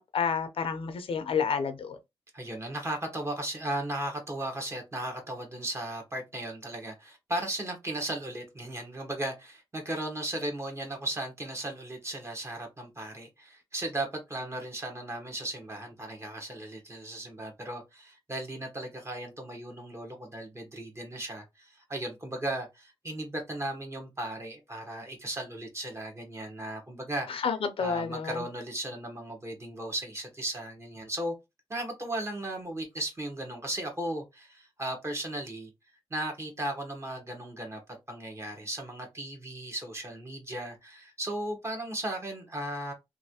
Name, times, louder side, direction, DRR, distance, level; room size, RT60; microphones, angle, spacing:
voice 1, 0.0-2.0 27.3-28.4, left 6 dB, 65° left, 0.6 m, -30 dB
voice 2, 2.3-27.3 27.8-31.3 31.7-35.7 36.1-37.8 38.1-42.9, right 1 dB, 30° right, 1.4 m, -36 dB
3.2 x 2.6 x 2.8 m
cardioid pair, 80°, 10 cm